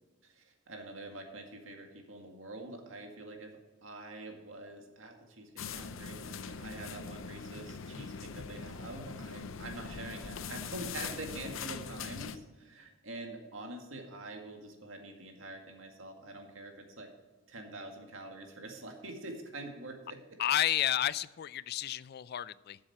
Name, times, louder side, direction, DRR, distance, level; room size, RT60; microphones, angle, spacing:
voice 1, 0.2-3.5 3.8-17.1 17.5-20.2, right 2 dB, 80° right, 3 dB, 2.0 m, -45 dB
sound 1, 5.6-12.4, left 5 dB, 90° left, 0.6 m, -42 dB
voice 2, 20.4-22.8, left 12 dB, 55° left, 18 dB, 0.3 m, -31 dB
12.5 x 7.5 x 4.3 m, 1.3 s
head